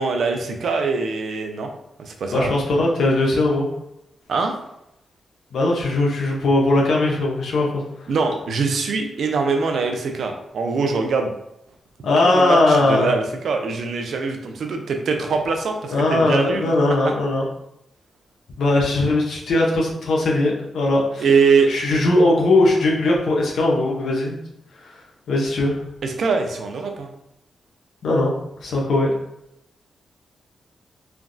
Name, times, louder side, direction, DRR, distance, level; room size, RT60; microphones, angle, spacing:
voice 1, 0.0-1.7 2.0-2.5 4.3-4.6 8.1-11.3 12.3-16.8 17.0-17.1 21.2-21.7 26.0-27.1, right 4 dB, 75° right, 4 dB, 0.4 m, -22 dB
voice 2, 2.3-3.7 5.5-7.8 12.0-13.1 15.9-17.5 18.6-21.2 21.7-24.4 25.3-25.7 28.0-28.3 28.6-29.1, left 2 dB, 80° left, -2 dB, 0.7 m, -19 dB
3.3 x 2.2 x 2.5 m, 0.82 s
cardioid pair, 90°, 0 cm